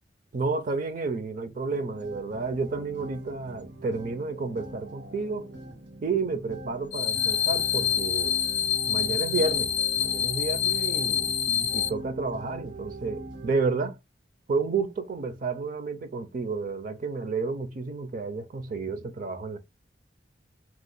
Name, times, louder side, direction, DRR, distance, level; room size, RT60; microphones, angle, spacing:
voice 1, 0.3-5.5 6.0-8.4 8.9-11.3 11.7-14.0 14.5-19.6, right 4 dB, 50° right, 0.4 m, -31 dB
sound 1, 1.7-13.5, right 2 dB, 85° right, 1.3 m, -41 dB
sound 2, 6.9-11.9, left 9 dB, 65° left, 0.5 m, -26 dB
2.9 x 2.1 x 3.8 m
head